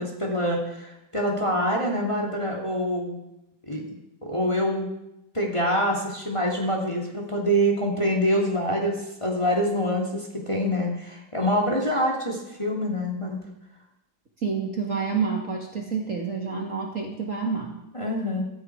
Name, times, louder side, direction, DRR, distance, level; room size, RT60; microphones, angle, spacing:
voice 1, 0.0-3.2 3.7-3.8 4.2-4.9 5.3-13.4 17.9-18.4, equal, 15° left, -2 dB, 2.6 m, -25 dB
voice 2, 14.4-17.8, right 5 dB, 40° right, 0 dB, 2.2 m, -28 dB
16.0 x 13.5 x 4.8 m, 0.88 s
omnidirectional pair, 2.2 m